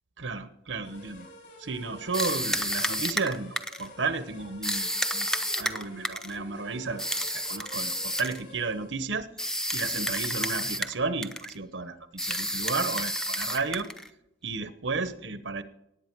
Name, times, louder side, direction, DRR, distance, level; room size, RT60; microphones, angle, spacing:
voice 1, 0.2-1.3 1.6-5.3 5.6-9.3 9.7-13.9 14.4-15.6, right 4 dB, 85° right, 11 dB, 1.0 m, -33 dB
sound 1, 0.8-9.1, left 1 dB, 60° left, 6.3 m, -50 dB
sound 2, 2.1-3.9 4.6-6.4 7.0-8.4 9.4-11.0 11.2-11.6 12.2-14.1, equal, 5° left, 0.6 m, -30 dB
18.0 x 8.9 x 4.6 m, 0.83 s
head